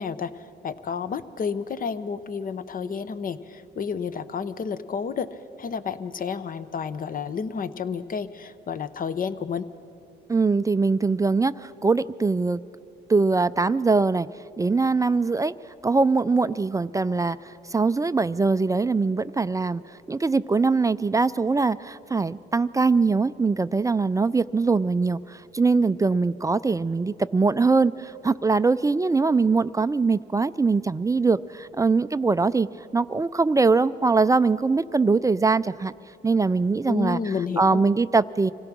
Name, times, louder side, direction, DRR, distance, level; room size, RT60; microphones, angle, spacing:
voice 1, 0.0-9.7 36.9-37.8, left 6 dB, 45° left, 14 dB, 0.8 m, -31 dB
voice 2, 10.3-12.6 13.1-14.3 14.6-15.5 15.8-19.8 20.1-32.7 32.9-35.9 36.2-37.2 37.6-38.5, right 4 dB, 15° right, 14 dB, 0.4 m, -22 dB
25.5 x 17.0 x 6.1 m, 2.9 s
cardioid pair, 90°, 20 cm